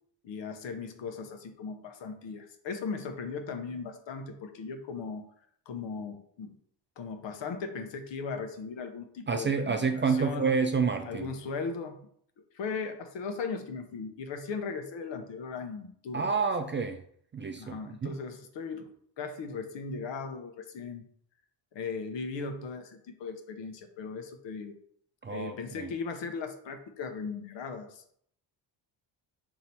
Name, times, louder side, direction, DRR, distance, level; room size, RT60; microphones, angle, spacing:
voice 1, 0.2-5.3 5.7-6.5 7.0-10.6 11.1-12.0 12.5-16.3 17.6-21.1 21.7-24.8 25.3-28.0, left 5 dB, 60° left, 7 dB, 0.9 m, -38 dB
voice 2, 9.3-11.3 16.1-17.0 17.3-18.2 25.2-25.9, right 5 dB, 25° right, 6 dB, 0.4 m, -29 dB
3.9 x 2.8 x 4.3 m, 0.65 s
supercardioid pair, 70°, 49 cm